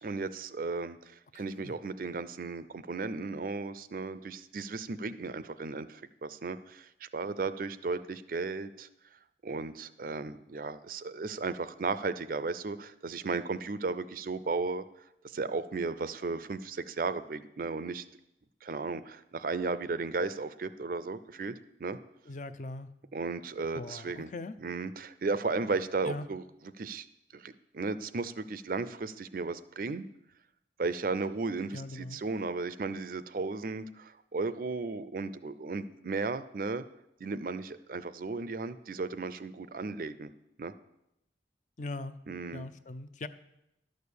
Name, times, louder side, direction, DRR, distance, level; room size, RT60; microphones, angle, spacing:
voice 1, 0.0-8.9 9.4-14.8 15.2-18.0 18.6-22.0 23.1-24.3 24.6-26.4 26.8-27.0 27.3-30.1 30.8-36.8 37.2-40.3 40.6-40.7 42.3-42.7, right 3 dB, 50° right, 14 dB, 0.5 m, -35 dB
voice 2, 1.3-1.8 22.3-22.9 23.7-24.5 26.0-26.3 31.7-32.2 41.8-42.1 42.5-43.3, left 2 dB, 45° left, 12 dB, 0.5 m, -40 dB
11.5 x 6.6 x 6.9 m, 0.85 s
head